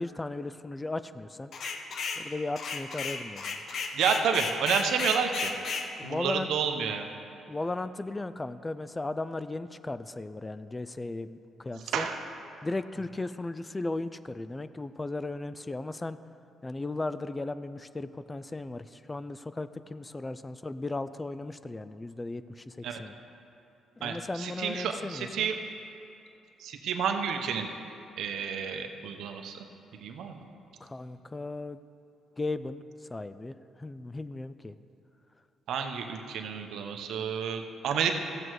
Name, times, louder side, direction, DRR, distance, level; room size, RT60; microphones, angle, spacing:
voice 1, 0.0-1.5 2.2-3.6 6.0-6.5 7.5-12.1 12.6-16.2 16.6-23.2 24.0-25.5 30.8-31.8 32.4-32.8 33.1-34.8, left 2 dB, 20° left, 13 dB, 0.3 m, -36 dB
sound 1, 1.5-2.2 2.6-5.9, left 5 dB, 60° left, 0.9 m, -33 dB
voice 2, 3.9-5.5 6.0-7.1 11.9-12.2 22.8-23.0 24.0-25.5 26.6-27.7 28.2-29.6 29.9-30.4 35.7-38.1, right 7 dB, 75° right, 5 dB, 0.9 m, -30 dB
14.0 x 7.7 x 4.7 m, 2.8 s
cardioid pair, 90°, 0 cm